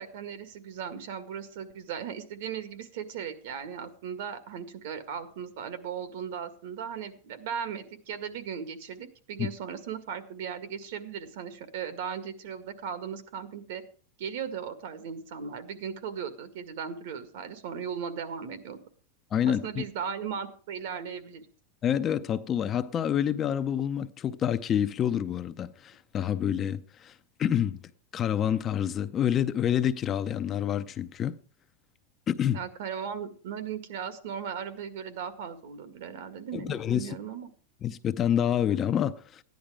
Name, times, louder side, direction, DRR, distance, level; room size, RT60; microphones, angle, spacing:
voice 1, 0.0-13.8 14.2-18.8 19.5-21.4 32.5-37.5, right 7 dB, 65° right, 1.9 m, -37 dB
voice 2, 19.3-19.8 21.8-27.1 27.4-27.8 28.1-31.4 32.3-32.6 36.6-37.2 37.8-39.4, left 9 dB, 25° left, 0.5 m, -27 dB
14.5 x 10.5 x 4.9 m
supercardioid pair, 165°, 0 cm